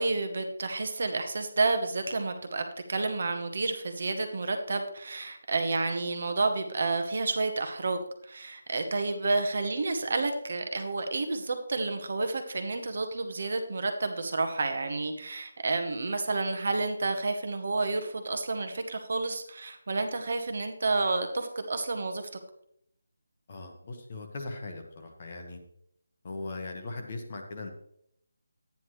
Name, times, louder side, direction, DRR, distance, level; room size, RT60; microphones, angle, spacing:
voice 1, 0.0-22.2, right 3 dB, 40° right, 6 dB, 1.0 m, -30 dB
voice 2, 23.5-25.6 26.2-27.7, left 2 dB, 25° left, 3 dB, 1.0 m, -39 dB
11.5 x 9.5 x 3.1 m, 0.72 s
figure-of-eight pair, 180°, 0 cm